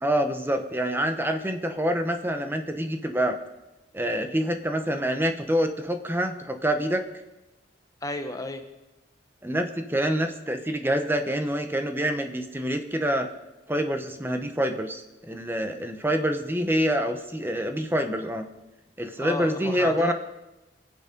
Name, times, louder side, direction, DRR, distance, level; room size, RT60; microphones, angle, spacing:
voice 1, 0.0-3.4 3.9-7.0 9.4-13.3 13.7-18.5 19.0-20.1, equal, 10° right, 6 dB, 0.9 m, -26 dB
voice 2, 8.0-8.6 19.2-20.1, left 2 dB, 20° left, 7 dB, 0.9 m, -32 dB
23.5 x 8.2 x 5.3 m, 1.0 s
head